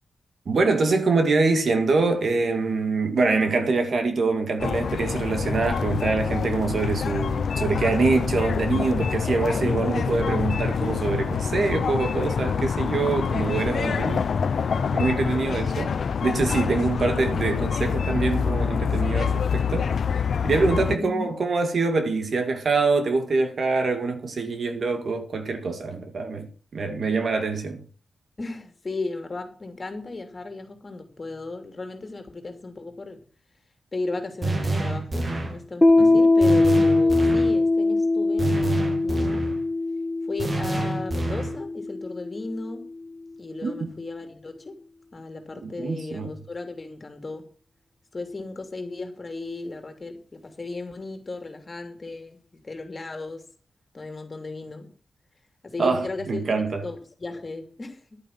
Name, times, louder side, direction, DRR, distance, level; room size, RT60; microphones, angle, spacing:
voice 1, 0.5-14.2 14.9-15.9 16.2-27.8 36.0-36.2 43.6-43.9 45.6-46.3 55.8-56.8, right 3 dB, 60° right, 2.2 m, -25 dB
sound 1, 4.6-21.0, left 6 dB, 75° left, 0.7 m, -26 dB
voice 2, 9.4-9.9 13.9-14.0 20.9-21.3 28.4-33.2 33.9-39.5 40.3-42.8 43.4-44.8 45.1-47.5 48.1-53.4 53.9-54.9 55.6-58.0, left 3 dB, 35° left, 3.0 m, -35 dB
sound 2, 34.4-35.6 36.4-37.6 38.4-39.6 40.4-41.6, right 2 dB, 40° right, 2.3 m, -27 dB
Piano, 35.8-43.1, left 2 dB, 15° left, 1.0 m, -22 dB
11.0 x 9.1 x 6.0 m
wide cardioid pair, 110°, 0 cm